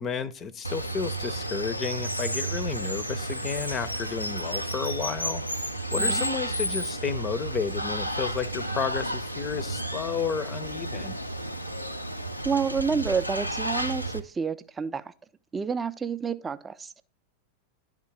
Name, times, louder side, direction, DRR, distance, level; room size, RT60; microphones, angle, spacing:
voice 1, 0.0-5.4 5.9-11.2, left 6 dB, 25° left, 16 dB, 0.7 m, -32 dB
Water, 0.6-14.2, right 1 dB, 90° left, 0.6 m, -32 dB
voice 2, 12.4-15.1 15.5-17.0, right 5 dB, 15° right, 12 dB, 0.5 m, -29 dB
11.0 x 3.7 x 7.3 m, 0.40 s
figure-of-eight pair, 90°, 0 cm